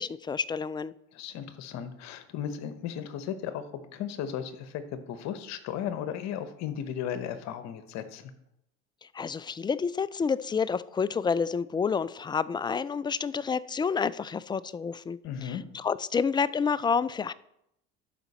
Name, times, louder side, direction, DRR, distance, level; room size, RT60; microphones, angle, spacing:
voice 1, 0.0-0.9 9.0-17.3, left 6 dB, 15° left, 17 dB, 0.3 m, -29 dB
voice 2, 1.1-8.3 15.2-15.6, left 9 dB, 65° left, 11 dB, 1.1 m, -35 dB
12.0 x 5.1 x 4.2 m, 0.80 s
hypercardioid pair, 75°, 30 cm